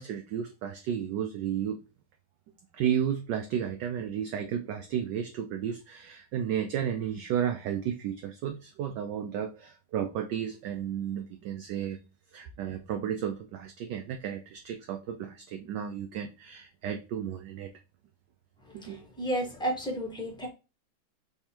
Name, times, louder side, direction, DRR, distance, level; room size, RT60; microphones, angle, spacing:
voice 1, 0.0-1.8 2.7-12.0 12.3-17.7 18.7-19.0, right 9 dB, 75° right, 5 dB, 1.0 m, -33 dB
voice 2, 19.2-20.5, right 1 dB, 5° left, 0 dB, 0.7 m, -31 dB
3.5 x 3.5 x 4.3 m, 0.30 s
omnidirectional pair, 2.3 m